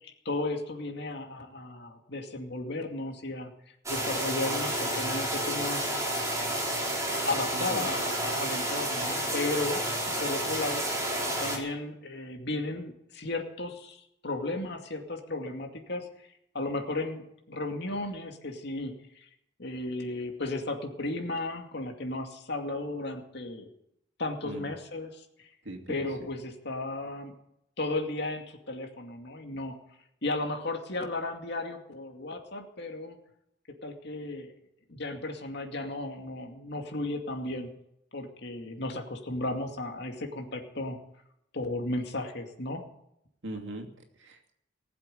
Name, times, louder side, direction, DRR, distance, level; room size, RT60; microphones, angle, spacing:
voice 1, 0.0-3.5 3.9-5.9 7.2-9.8 10.2-10.9 11.4-16.1 16.5-19.3 19.6-23.7 24.2-25.5 25.9-27.3 27.8-29.7 30.2-33.2 33.8-34.5 34.9-37.7 38.1-41.0 41.5-42.8, left 2 dB, 60° left, 4 dB, 2.4 m, -34 dB
sound 1, 3.9-11.6, right 1 dB, 15° right, 4.2 m, -30 dB
voice 2, 7.5-7.9 24.4-24.7 25.6-26.1 43.4-43.9 44.2-44.5, right 1 dB, 70° right, 2 dB, 2.6 m, -40 dB
19.5 x 7.7 x 9.2 m, 0.79 s
head